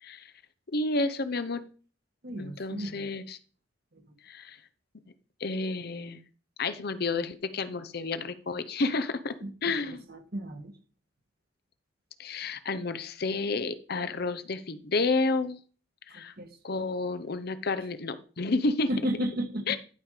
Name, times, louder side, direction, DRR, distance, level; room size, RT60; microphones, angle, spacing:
voice 1, 0.0-0.3 0.7-1.6 2.4-3.4 4.2-4.6 5.4-6.2 6.6-9.4 9.6-10.0 12.2-15.6 16.1-16.3 16.6-18.9 19.7-19.8, left 3 dB, 55° left, 13 dB, 0.8 m, -30 dB
voice 2, 2.2-3.1 9.4-9.5 10.1-10.7 16.4-16.5 18.9-19.6, equal, 55° right, 6 dB, 1.5 m, -33 dB
12.0 x 5.3 x 4.9 m, 0.40 s
head